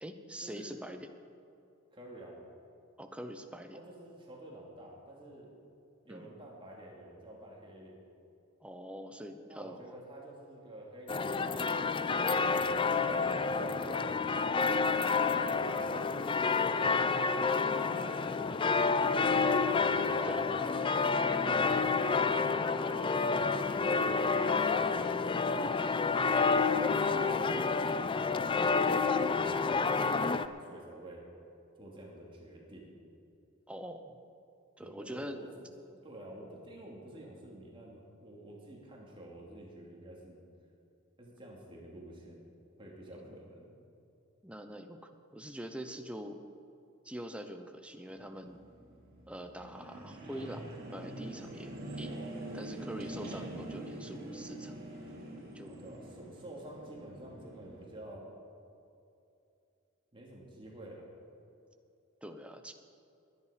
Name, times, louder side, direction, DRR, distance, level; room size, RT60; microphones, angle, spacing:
voice 1, 0.0-1.1 3.0-3.8 6.1-6.3 8.6-9.8 17.6-17.9 20.2-20.5 23.0-23.5 33.7-34.2 34.8-35.4 43.1-43.3 44.4-46.4 47.0-48.6 49.3-52.2 52.5-54.7 55.5-55.7 62.2-62.7, equal, 5° right, 6 dB, 0.8 m, -44 dB
voice 2, 1.9-2.4 3.7-5.5 6.0-8.0 9.5-12.5 13.3-16.9 18.0-20.6 21.3-22.4 22.8-25.0 26.1-31.3 31.8-32.9 34.8-35.5 35.8-40.4 41.2-42.4 42.8-43.7 55.6-58.3 60.1-61.1, right 1 dB, 25° right, -2 dB, 2.5 m, -50 dB
sound 1, 11.1-30.5, left 4 dB, 25° left, 0.4 m, -29 dB
sound 2, 48.1-57.8, right 1 dB, 45° right, 3.1 m, -45 dB
20.0 x 10.0 x 5.1 m, 2.7 s
head